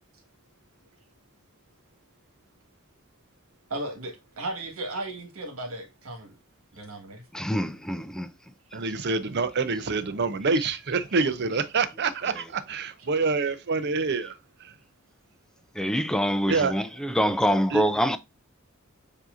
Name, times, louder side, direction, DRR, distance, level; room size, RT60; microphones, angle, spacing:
voice 1, 3.7-6.4 6.7-7.3, right 1 dB, 75° right, 1.6 m, -35 dB
voice 2, 7.3-8.3 15.7-18.2, equal, 5° left, 0.3 m, -25 dB
voice 3, 8.7-14.7 16.5-16.7 17.7-17.8, right 4 dB, 50° right, 0.6 m, -27 dB
7.2 x 2.8 x 2.5 m
head